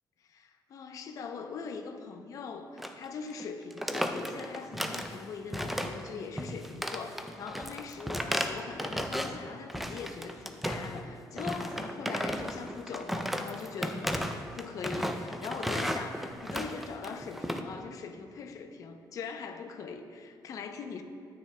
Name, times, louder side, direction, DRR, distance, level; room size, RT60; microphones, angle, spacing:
voice 1, 0.3-21.0, left 5 dB, 50° left, 6 dB, 0.6 m, -41 dB
sound 1, 2.8-3.0 3.3-3.4 3.7-5.2 5.5-6.1 6.4-9.4 9.7-11.0 11.4-17.6, equal, ahead, 0.4 m, -34 dB
13.5 x 9.6 x 2.2 m, 2.4 s
cardioid pair, 170°, 7 cm